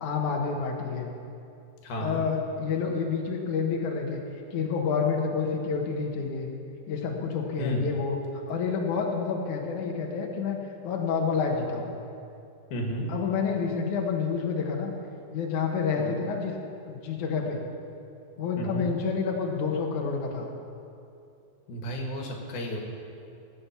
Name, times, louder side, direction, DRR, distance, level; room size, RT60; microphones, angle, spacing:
voice 1, 0.0-1.1 2.0-4.2 4.5-6.5 6.9-8.2 8.5-11.9 13.1-14.9 15.3-16.5 16.9-17.6 18.4-20.5, left 5 dB, 65° left, 1 dB, 2.5 m, -29 dB
voice 2, 1.8-2.2 7.6-7.8 12.7-13.1 16.0-16.2 18.6-18.9 21.7-22.8, equal, 90° left, 1 dB, 3.6 m, -32 dB
16.0 x 8.8 x 7.1 m, 2.6 s
omnidirectional pair, 4.2 m